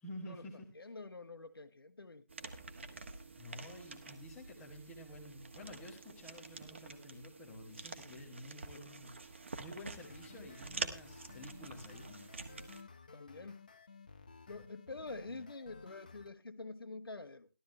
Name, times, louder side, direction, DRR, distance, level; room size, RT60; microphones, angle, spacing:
voice 1, 0.0-0.7 3.4-9.1 9.6-12.3, left 1 dB, 5° left, 1.1 m, -50 dB
voice 2, 0.8-2.2 13.1-13.6 14.5-17.5, left 3 dB, 85° left, 1.9 m, -47 dB
sound 1, 2.3-12.8, right 3 dB, 30° right, 1.3 m, -47 dB
sound 2, 10.0-16.3, left 4 dB, 20° left, 0.7 m, -55 dB
13.5 x 13.0 x 3.2 m
figure-of-eight pair, 175°, 12 cm